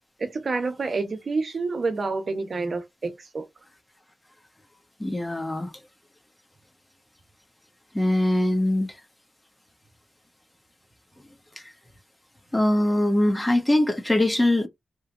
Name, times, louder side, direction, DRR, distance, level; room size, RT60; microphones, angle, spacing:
voice 1, 0.2-3.5, right 3 dB, 60° right, 0.9 m, -28 dB
voice 2, 5.0-5.7 7.9-8.9 11.6-11.7 12.5-14.7, left 1 dB, 15° left, 1.0 m, -22 dB
3.0 x 2.4 x 3.6 m
cardioid pair, 45°, 0 cm